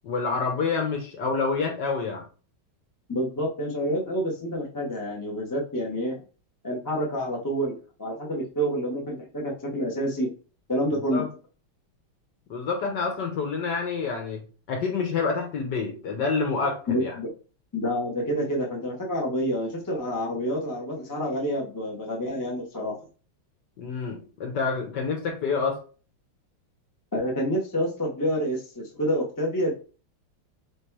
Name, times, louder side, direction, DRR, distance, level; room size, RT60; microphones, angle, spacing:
voice 1, 0.0-2.2 11.1-11.3 12.5-14.4 14.7-17.1 23.8-25.8, left 4 dB, 60° left, 3 dB, 1.4 m, -27 dB
voice 2, 3.1-6.2 6.6-10.3 10.7-11.2 16.9-17.3 17.7-22.9 27.1-29.7, equal, 20° left, -2 dB, 0.5 m, -28 dB
3.3 x 3.1 x 4.6 m, 0.37 s
omnidirectional pair, 2.4 m